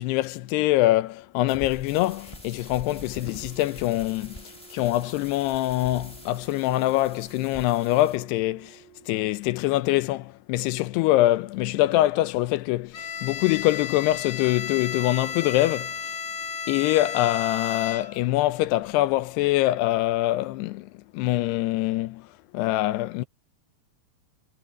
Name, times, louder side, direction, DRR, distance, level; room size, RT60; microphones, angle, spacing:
voice 1, 0.0-4.4 4.7-8.8 9.1-16.0 16.7-22.3 22.5-23.2, left 16 dB, 85° left, 2.8 m, -24 dB
sound 1, 1.5-8.2, left 1 dB, 10° left, 4.6 m, -45 dB
Wind instrument woodwind instrument, 3.1-9.3, right 14 dB, 70° right, 6.1 m, -54 dB
Bowed string instrument, 12.9-18.4, left 6 dB, 65° left, 1.3 m, -33 dB
omnidirectional pair, 4.8 m